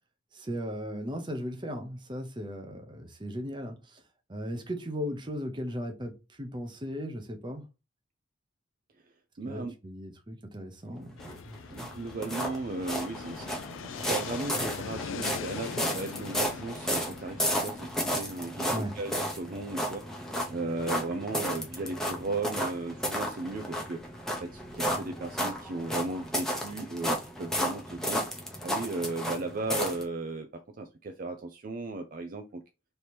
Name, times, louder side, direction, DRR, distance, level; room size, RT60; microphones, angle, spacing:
voice 1, 0.3-4.0 4.3-7.7 9.5-11.9 18.7-19.0, equal, 25° right, 0.8 m, -37 dB
voice 2, 9.4-9.7 11.7-13.6 14.0-24.0 24.4-28.2 28.6-32.6, right 2 dB, 45° right, 0.4 m, -36 dB
Fixed-wing aircraft airplane, 11.2-26.9, left 6 dB, 85° left, 0.4 m, -44 dB
sound 1, 11.2-30.0, equal, 5° left, 0.7 m, -33 dB
3.3 x 2.9 x 4.3 m
head